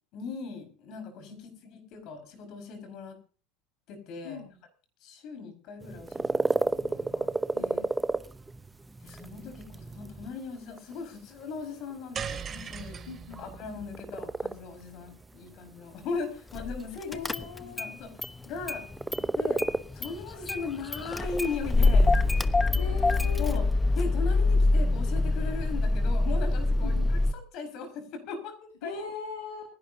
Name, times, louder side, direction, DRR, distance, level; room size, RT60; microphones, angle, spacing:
voice 1, 0.1-3.2 3.9-4.4 5.0-7.3 7.6-7.8 9.0-13.0 13.4-17.2 17.6-18.1 18.4-18.8 19.2-19.6 19.9-22.1 23.4-23.6 23.9-29.0, left 4 dB, 55° left, 6 dB, 5.1 m, -38 dB
sound 1, 5.8-22.5, right 2 dB, 15° right, 0.8 m, -34 dB
voice 2, 7.6-8.0 13.1-13.5 17.1-17.9 22.8-23.6 26.8-27.1 28.8-29.6, left 5 dB, 80° left, 3 dB, 2.4 m, -40 dB
sound 2, 12.1-16.5, right 6 dB, 35° right, 2.6 m, -41 dB
Car / Engine starting, 16.6-16.8 17.1-17.9 18.2-19.3 19.6-27.3, left 2 dB, 15° left, 0.9 m, -25 dB
28.5 x 11.0 x 2.7 m, 0.37 s
hypercardioid pair, 80°, 0 cm